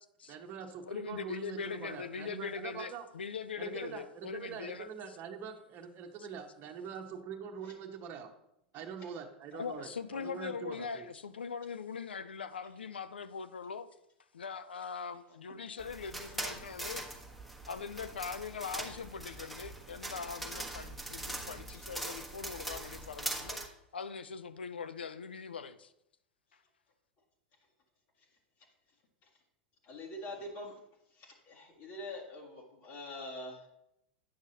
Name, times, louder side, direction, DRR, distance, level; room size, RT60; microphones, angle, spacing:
voice 1, 0.3-3.1 3.6-8.3 8.7-11.1, right 7 dB, 40° right, 1.0 m, -44 dB
voice 2, 0.9-4.9 9.5-13.9 14.3-17.0 17.7-23.6 23.9-25.9, left 6 dB, 85° left, 0.5 m, -41 dB
sound 1, 15.8-23.7, right 1 dB, ahead, 1.2 m, -42 dB
voice 3, 29.8-30.8 31.1-33.7, left 1 dB, 55° left, 1.9 m, -44 dB
9.3 x 6.2 x 2.8 m
hypercardioid pair, 95°, 5 cm